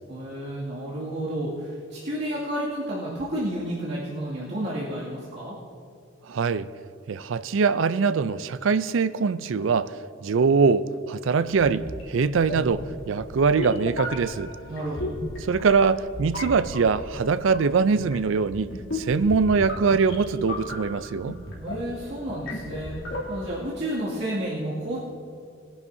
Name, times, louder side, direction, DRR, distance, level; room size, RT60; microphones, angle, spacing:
voice 1, 0.1-5.6 14.7-15.2 21.6-25.0, right 1 dB, 55° right, -8 dB, 2.3 m, -31 dB
voice 2, 6.3-6.7 7.1-9.9 10.2-14.5 15.5-21.4, right 5 dB, 75° right, 14 dB, 0.4 m, -23 dB
sound 1, 11.5-23.7, left 1 dB, 85° left, 2.7 m, -35 dB
21.0 x 10.5 x 2.7 m, 2.4 s
head